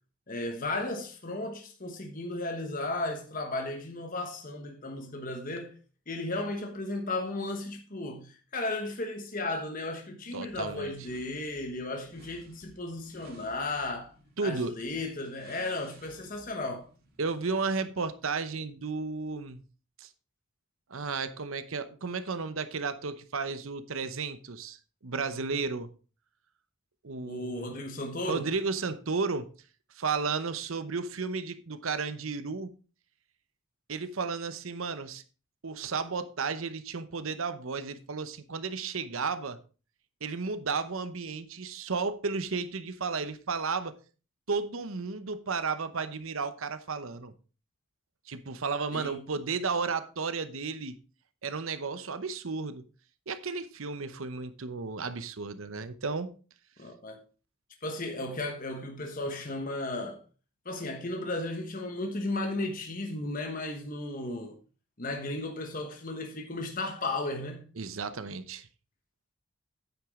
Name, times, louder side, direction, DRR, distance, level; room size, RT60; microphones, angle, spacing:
voice 1, 0.3-5.7 6.1-14.1 14.4-16.9 27.2-28.5 48.9-49.2 56.8-57.2 57.8-60.2 60.6-64.6 65.0-67.7, left 2 dB, 40° left, 1.2 m, -35 dB
voice 2, 10.3-10.9 14.4-14.8 17.2-19.6 20.0-20.1 20.9-24.8 25.0-25.9 27.0-27.7 28.3-29.5 30.0-32.7 33.9-35.2 35.6-39.6 40.2-43.9 44.5-47.3 48.3-51.0 51.4-52.8 53.3-56.3 67.8-68.7, right 4 dB, 75° right, 0.8 m, -33 dB
sound 1, 10.5-18.0, right 2 dB, 45° right, 2.1 m, -57 dB
9.1 x 8.2 x 3.7 m
head